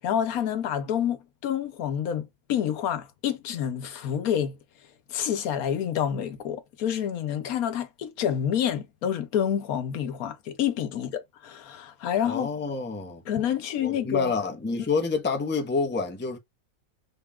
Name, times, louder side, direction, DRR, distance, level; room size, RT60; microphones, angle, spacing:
voice 1, 0.0-4.6 5.1-12.5 13.3-14.3, left 9 dB, 80° left, 1.2 m, -28 dB
voice 2, 12.2-13.2 13.8-16.4, left 4 dB, 15° left, 0.5 m, -28 dB
3.6 x 2.3 x 3.5 m
omnidirectional pair, 1.5 m